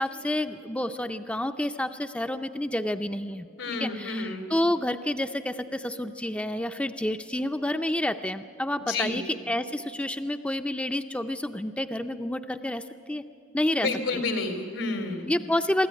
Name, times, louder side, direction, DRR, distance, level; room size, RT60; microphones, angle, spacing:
voice 1, 0.0-3.5 3.8-13.2 13.5-13.9 14.1-14.2 15.3-15.9, left 1 dB, 5° left, 8 dB, 0.4 m, -29 dB
voice 2, 3.6-4.5 8.9-9.2 13.7-15.3, left 3 dB, 90° left, 6 dB, 3.0 m, -30 dB
24.0 x 13.5 x 9.5 m, 2.2 s
head